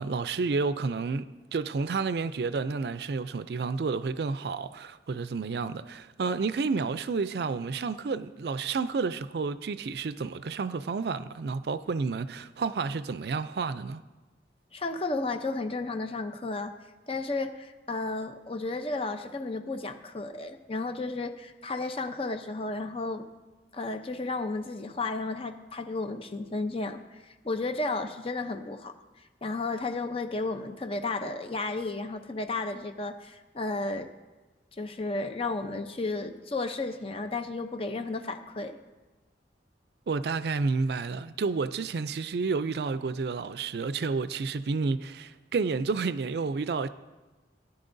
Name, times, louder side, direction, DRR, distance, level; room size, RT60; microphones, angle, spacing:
voice 1, 0.0-14.0 40.1-46.9, right 4 dB, 65° right, 0.4 m, -30 dB
voice 2, 14.7-16.7 17.1-23.3 23.7-28.9 29.4-34.1 34.8-38.8, left 3 dB, 30° left, 0.6 m, -33 dB
18.5 x 10.5 x 2.6 m
head